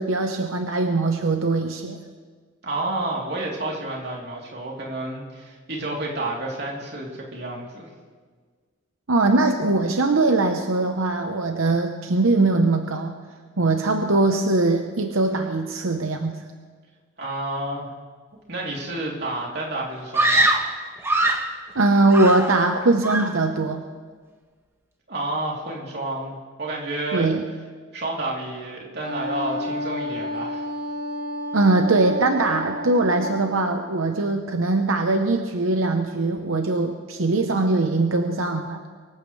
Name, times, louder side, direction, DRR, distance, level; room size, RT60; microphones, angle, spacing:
voice 1, 0.0-2.0 9.1-13.2 13.6-16.4 21.7-23.8 27.1-27.4 31.5-38.8, right 2 dB, 90° right, 5 dB, 0.9 m, -21 dB
voice 2, 2.6-7.9 17.2-17.9 18.5-20.6 25.1-27.3 27.9-30.7, right 2 dB, 55° right, -3 dB, 3.3 m, -30 dB
Screaming, 20.1-21.6 22.1-22.8 23.0-23.5, right 2 dB, 10° right, 1.0 m, -22 dB
Wind instrument woodwind instrument, 29.0-33.7, equal, 65° left, 3.7 m, -31 dB
24.0 x 15.5 x 3.3 m, 1.5 s
head